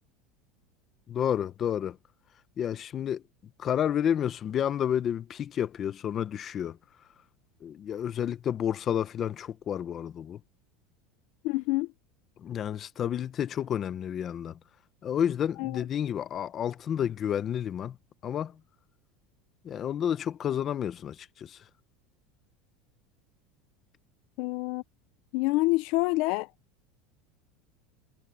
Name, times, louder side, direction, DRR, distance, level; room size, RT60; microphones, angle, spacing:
voice 1, 1.1-2.0 2.6-3.2 3.6-6.8 7.6-10.4 12.4-14.6 15.0-18.0 18.2-18.6 19.6-21.6, left 9 dB, 25° left, 0.8 m, -30 dB
voice 2, 11.4-11.9 15.6-15.7 24.4-24.8 25.3-26.5, left 22 dB, 50° left, 0.5 m, -27 dB
supercardioid pair, 175°, 0 cm